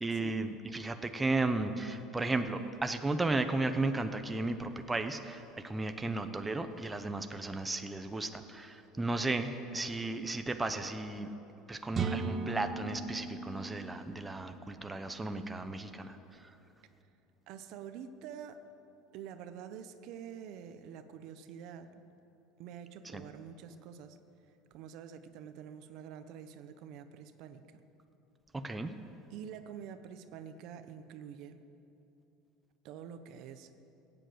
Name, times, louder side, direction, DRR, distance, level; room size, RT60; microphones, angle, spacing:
voice 1, 0.0-11.3 11.7-16.2 16.4-16.5 23.1-23.2 28.5-28.9, right 2 dB, 10° right, 7 dB, 0.8 m, -34 dB
sound 1, 11.9-15.7, right 4 dB, 30° right, 1.1 m, -38 dB
voice 2, 17.5-18.6 19.1-22.0 22.6-24.2 24.7-27.6 29.3-31.6 32.8-33.8, right 8 dB, 60° right, 10 dB, 0.9 m, -47 dB
16.0 x 9.0 x 7.8 m, 3.0 s
supercardioid pair, 115°, 0 cm